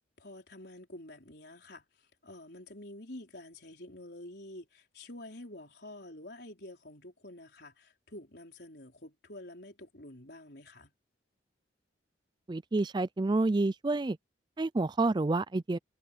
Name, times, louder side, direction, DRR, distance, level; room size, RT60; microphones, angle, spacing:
voice 1, 0.2-1.9 2.2-10.9, left 1 dB, 55° left, 4.7 m, -48 dB
voice 2, 12.5-14.2 14.6-15.8, right 2 dB, 25° right, 0.4 m, -29 dB
head